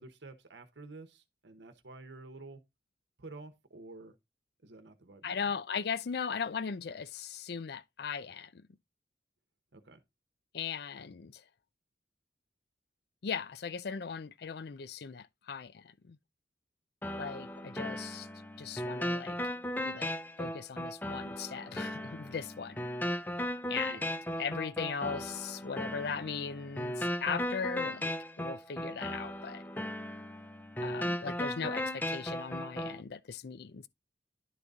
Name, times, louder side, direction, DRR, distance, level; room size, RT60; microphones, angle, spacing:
voice 1, 0.0-2.6 3.2-4.1 4.6-5.6 9.7-10.0 23.9-24.1 31.6-31.7, right 3 dB, 80° right, 1.0 m, -50 dB
voice 2, 5.2-8.6 10.5-11.4 13.2-16.2 17.2-18.3 18.6-19.4 19.8-22.8 23.7-24.0 24.4-28.1 28.4-29.6 30.8-31.8 32.1-33.9, left 6 dB, 60° left, 0.4 m, -38 dB
sound 1, 17.0-33.0, left 1 dB, 10° left, 0.5 m, -37 dB
11.0 x 4.0 x 3.6 m
head